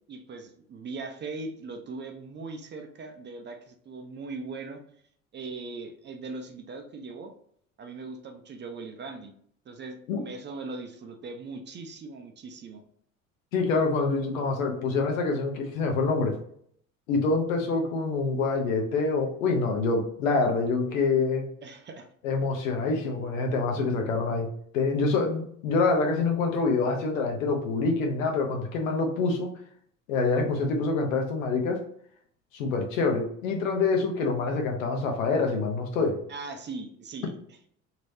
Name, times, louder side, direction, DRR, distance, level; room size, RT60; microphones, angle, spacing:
voice 1, 0.1-4.8 5.3-7.3 7.8-9.3 9.7-12.8 21.6-22.1 36.3-37.4, right 3 dB, 25° right, 5 dB, 0.5 m, -40 dB
voice 2, 13.5-16.3 17.1-21.5 22.2-24.5 24.7-29.5 30.1-31.8 32.5-36.2, left 3 dB, 75° left, 3 dB, 0.8 m, -26 dB
3.1 x 2.9 x 2.7 m, 0.64 s
hypercardioid pair, 70°, 40 cm